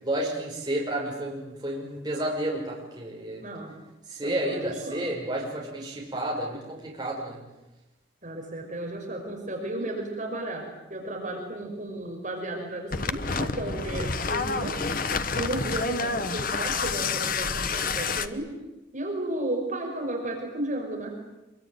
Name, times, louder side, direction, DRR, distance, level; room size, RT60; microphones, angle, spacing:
voice 1, 0.0-3.5 4.1-7.4, right 1 dB, 20° right, -3 dB, 5.8 m, -31 dB
voice 2, 3.4-3.7 4.2-5.1 8.2-14.8 15.3-18.5 18.9-21.2, right 1 dB, 40° right, 1 dB, 5.5 m, -33 dB
sound 1, 12.9-18.3, left 4 dB, 45° left, 1.2 m, -29 dB
25.5 x 23.5 x 9.4 m, 1.0 s
head